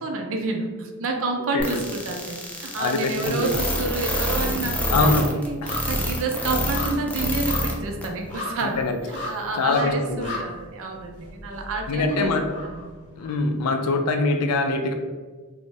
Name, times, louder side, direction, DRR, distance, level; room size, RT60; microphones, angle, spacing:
voice 1, 0.0-5.6 5.9-8.8 9.1-12.8, right 3 dB, 65° right, 3 dB, 0.4 m, -29 dB
sound 1, 1.6-7.7 8.0-8.1 8.6-8.7, left 1 dB, 5° left, 0.3 m, -26 dB
sound 2, 2.7-3.4 3.7-13.7 14.1-14.2, left 2 dB, 30° left, 0.8 m, -37 dB
voice 2, 2.8-3.5 4.9-5.3 6.5-6.6 8.6-9.0 9.6-10.3 11.9-12.5 13.2-14.9, left 3 dB, 85° left, 6 dB, 0.4 m, -23 dB
2.6 x 2.1 x 3.2 m, 1.4 s
head